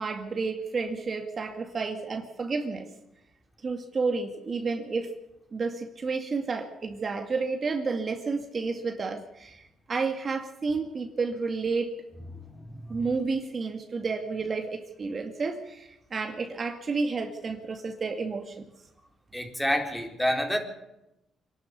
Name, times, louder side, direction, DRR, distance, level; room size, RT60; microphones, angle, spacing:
voice 1, 0.0-2.9 3.6-5.1 5.5-11.9 12.9-18.5, right 4 dB, 40° right, 4 dB, 2.2 m, -31 dB
voice 2, 12.3-13.1 19.3-20.6, equal, 5° left, 3 dB, 4.0 m, -29 dB
25.5 x 12.0 x 8.5 m, 0.90 s
cardioid pair, 90°, 0 cm